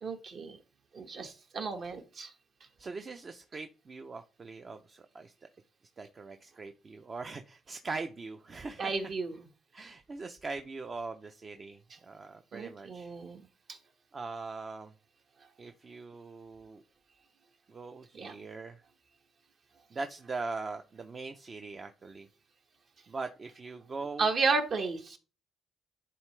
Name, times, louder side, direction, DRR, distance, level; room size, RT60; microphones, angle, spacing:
voice 1, 0.0-0.6 0.9-2.3 8.8-9.4 12.5-13.4 13.7-13.8 18.2-18.3 24.2-25.2, right 4 dB, 55° right, 5 dB, 1.3 m, -32 dB
voice 2, 2.8-5.3 6.0-8.9 9.7-11.8 12.1-13.1 14.1-14.9 15.6-16.8 17.7-18.8 19.9-22.3 23.1-24.3, right 3 dB, 40° right, 6 dB, 0.6 m, -41 dB
11.0 x 3.7 x 3.2 m, 0.35 s
cardioid pair, 90°, 0 cm